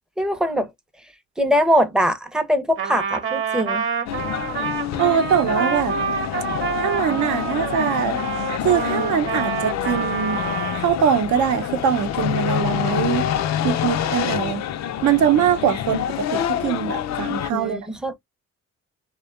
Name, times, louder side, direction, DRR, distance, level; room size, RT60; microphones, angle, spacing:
voice 1, 0.2-0.7 1.4-3.8 17.5-18.1, equal, ahead, 0.5 m, -21 dB
Trumpet, 2.8-10.9, right 6 dB, 45° right, 0.9 m, -27 dB
sound 1, 4.1-17.5, left 10 dB, 65° left, 0.4 m, -27 dB
voice 2, 5.0-5.9 6.8-8.2 8.6-10.4 10.7-13.3 13.6-14.6 15.0-17.8, right 8 dB, 75° right, 0.7 m, -22 dB
2.6 x 2.1 x 2.4 m
cardioid pair, 90°, 30 cm